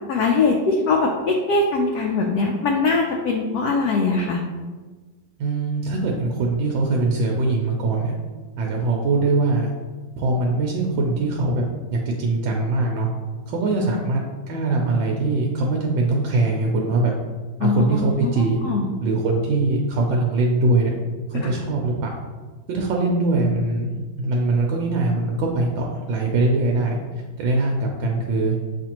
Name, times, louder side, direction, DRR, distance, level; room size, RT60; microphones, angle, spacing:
voice 1, 0.1-4.4 17.6-17.8 18.6-18.9 21.4-21.5, left 3 dB, 75° left, 0 dB, 0.9 m, -21 dB
voice 2, 5.4-8.1 8.6-9.7 10.2-11.6 11.9-13.1 13.5-17.1 17.6-18.6 19.0-20.9 21.3-22.1 22.7-27.0 27.4-28.6, right 2 dB, 85° right, 0 dB, 1.3 m, -22 dB
7.4 x 2.5 x 2.9 m, 1.3 s
omnidirectional pair, 2.0 m